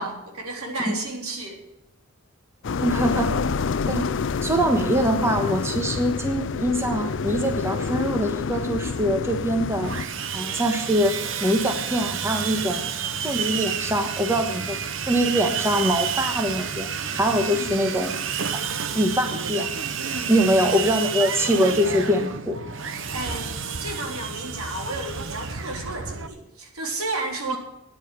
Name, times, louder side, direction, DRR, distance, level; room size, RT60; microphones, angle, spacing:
voice 1, 0.0-1.6 17.5-17.9 20.0-20.4 23.1-27.6, right 2 dB, 80° right, 2 dB, 3.6 m, -32 dB
sound 1, 2.6-10.0, left 5 dB, 55° left, 0.4 m, -27 dB
voice 2, 2.8-3.4 3.9-4.1 4.4-9.9 10.3-11.1 11.4-12.8 13.2-14.8 15.1-16.9 17.1-18.1 18.9-19.7 20.3-22.6 27.5-27.6, equal, 10° right, 5 dB, 1.3 m, -23 dB
Sawing, 9.8-26.3, right 7 dB, 60° right, 1.0 m, -30 dB
14.0 x 9.9 x 6.8 m, 0.86 s
head